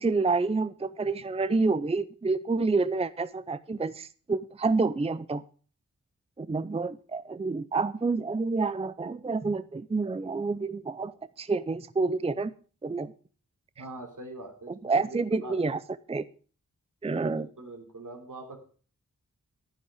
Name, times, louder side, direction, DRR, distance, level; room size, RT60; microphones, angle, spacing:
voice 1, 0.0-5.4 6.4-12.5 12.8-13.1 14.8-15.8 16.1-16.2 17.0-17.5, right 3 dB, 20° right, 15 dB, 0.5 m, -28 dB
voice 2, 13.8-14.7 15.0-15.7 17.3-18.6, right 2 dB, 70° right, 2 dB, 3.5 m, -43 dB
11.0 x 10.0 x 4.9 m, 0.39 s
wide cardioid pair, 75°, 33 cm